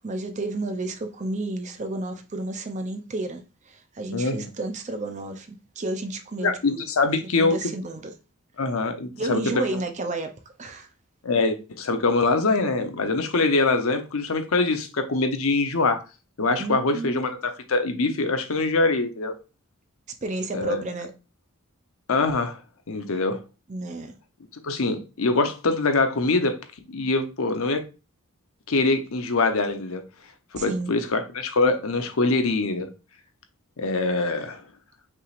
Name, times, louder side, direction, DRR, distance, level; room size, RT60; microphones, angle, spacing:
voice 1, 0.0-6.8 7.2-8.1 9.1-10.3 10.6-10.9 16.6-17.2 20.2-21.1 23.7-24.1 30.6-30.9, right 2 dB, 35° right, 0.5 m, -31 dB
voice 2, 4.1-4.5 6.4-7.6 8.6-9.8 11.2-16.0 16.4-19.3 20.5-20.8 22.1-22.6 22.9-23.4 24.6-26.6 26.9-27.8 28.7-30.0 30.6-32.9 33.8-34.6, left 3 dB, 70° left, 0.7 m, -24 dB
5.7 x 3.2 x 2.4 m
head